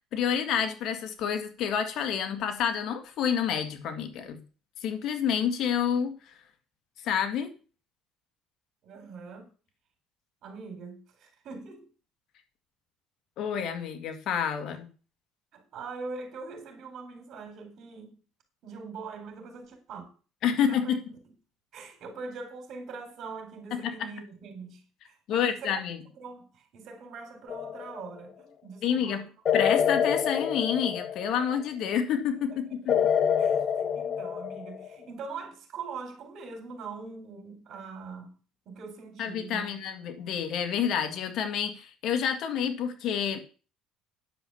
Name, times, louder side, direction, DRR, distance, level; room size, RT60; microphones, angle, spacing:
voice 1, 0.1-4.4 4.8-6.3 7.0-7.5 13.4-14.9 20.4-21.0 23.7-24.1 25.3-26.0 28.8-29.2 29.5-33.0 39.2-43.4, left 8 dB, 60° left, 2.0 m, -29 dB
voice 2, 8.8-9.5 10.4-11.9 15.5-18.1 18.6-20.1 20.6-21.0 21.7-25.8 26.2-29.3 32.5-32.9 33.4-38.3 38.7-39.7, right 4 dB, 55° right, 4.1 m, -42 dB
sound 1, 27.5-28.1 29.5-31.5 32.9-35.0, left 8 dB, 40° left, 0.8 m, -27 dB
10.0 x 6.9 x 7.0 m
cardioid pair, 120°, 0 cm